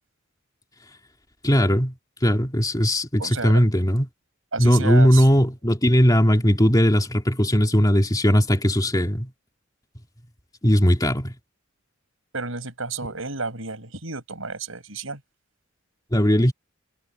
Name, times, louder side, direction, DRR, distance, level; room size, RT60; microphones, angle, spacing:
voice 1, 1.4-1.9 2.2-4.1 4.6-9.3 10.6-11.3 16.1-16.5, equal, 20° left, 2.7 m, -19 dB
voice 2, 3.2-3.6 4.5-5.3 12.3-15.2, right 4 dB, 70° right, 6.4 m, -31 dB
head